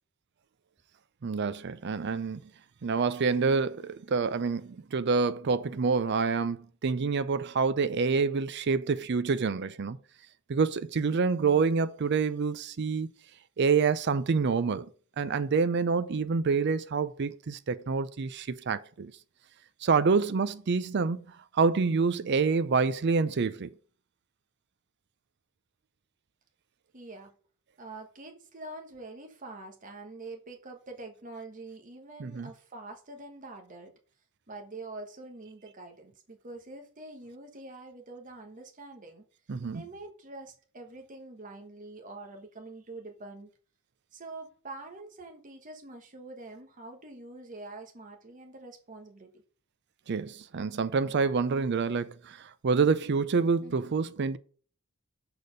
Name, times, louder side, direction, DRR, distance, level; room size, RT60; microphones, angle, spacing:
voice 1, 1.2-2.4 2.8-10.0 10.5-13.1 13.6-14.9 15.2-19.1 19.8-21.2 21.5-23.7 32.2-32.5 39.5-39.8 50.1-54.4, right 5 dB, 55° right, 0.5 m, -27 dB
voice 2, 26.9-27.3 27.8-33.9 34.5-39.2 39.7-43.5 44.1-49.3 53.6-53.9, right 2 dB, 40° right, 1.1 m, -45 dB
6.9 x 4.2 x 6.3 m
head